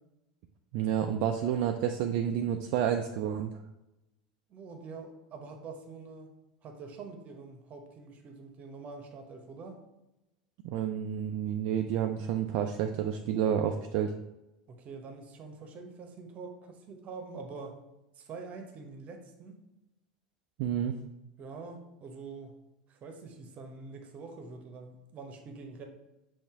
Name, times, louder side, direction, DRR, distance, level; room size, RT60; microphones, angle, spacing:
voice 1, 0.7-3.5 10.6-14.1 20.6-21.0, right 9 dB, 55° right, 5 dB, 0.3 m, -30 dB
voice 2, 4.5-6.3 6.6-9.8 14.7-17.8 18.2-19.6 21.4-22.6 22.9-25.8, right 4 dB, 40° right, 4 dB, 0.8 m, -45 dB
5.5 x 2.6 x 3.6 m, 0.96 s
hypercardioid pair, 85°, 4 cm